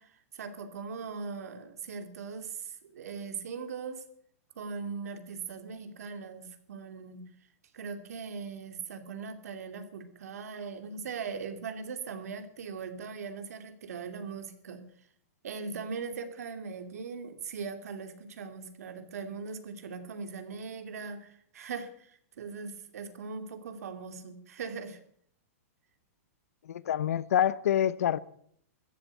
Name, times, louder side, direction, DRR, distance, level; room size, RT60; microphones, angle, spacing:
voice 1, 0.0-4.0 4.5-7.2 7.7-14.8 15.4-25.0, right 5 dB, 80° right, 2.8 m, -40 dB
voice 2, 26.6-28.2, left 10 dB, 75° left, 0.9 m, -26 dB
14.0 x 11.5 x 8.3 m
supercardioid pair, 165°, 8 cm